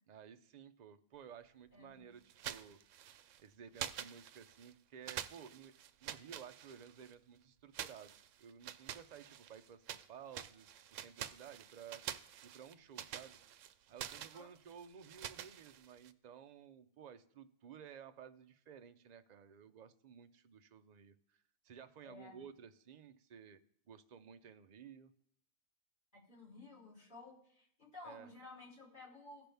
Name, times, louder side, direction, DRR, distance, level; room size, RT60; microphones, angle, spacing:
voice 1, 0.1-2.8 3.4-5.7 6.0-12.0 12.4-13.4 13.9-23.6 23.9-25.1 28.0-28.3, right 8 dB, 45° right, 9 dB, 0.6 m, -55 dB
sound 1, 2.3-3.4 3.7-4.7 5.1-7.1 7.7-10.1 10.3-16.1, right 10 dB, 85° right, 0.9 m, -47 dB
voice 2, 22.0-22.4 26.3-29.5, left 3 dB, 40° left, -4 dB, 3.6 m, -54 dB
16.5 x 6.0 x 3.4 m, 0.67 s
omnidirectional pair, 1.3 m